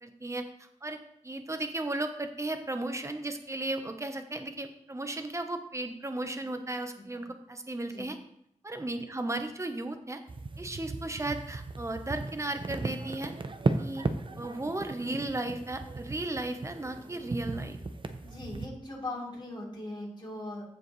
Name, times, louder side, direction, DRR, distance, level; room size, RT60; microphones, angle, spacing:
voice 1, 0.0-8.2 8.6-10.2 10.6-13.3 13.8-14.0 14.4-17.8, right 2 dB, 25° right, 6 dB, 0.9 m, -35 dB
sound 1, 10.3-18.7, right 3 dB, 40° right, 0.6 m, -36 dB
voice 2, 18.2-20.6, left 2 dB, 40° left, -4 dB, 3.4 m, -40 dB
15.0 x 5.0 x 3.2 m, 0.73 s
wide cardioid pair, 90°, 13 cm